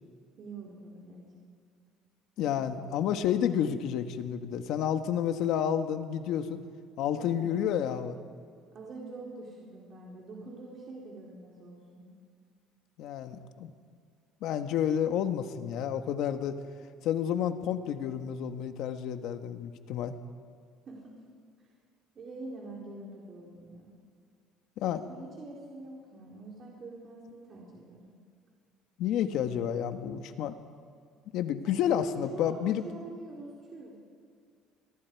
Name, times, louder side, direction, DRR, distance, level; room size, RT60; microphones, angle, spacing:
voice 1, 0.4-1.2 2.6-2.8 7.2-7.7 8.7-12.1 20.9-21.2 22.1-23.9 25.1-28.1 31.6-34.0, right 2 dB, 40° right, -4 dB, 4.2 m, -45 dB
voice 2, 2.4-6.6 7.0-8.2 13.0-13.7 14.4-16.6 17.0-20.1 24.8-25.0 29.0-30.6 31.3-32.9, left 9 dB, 65° left, 8 dB, 1.5 m, -30 dB
29.0 x 22.0 x 4.8 m, 2.2 s
cardioid pair, 140°, 0 cm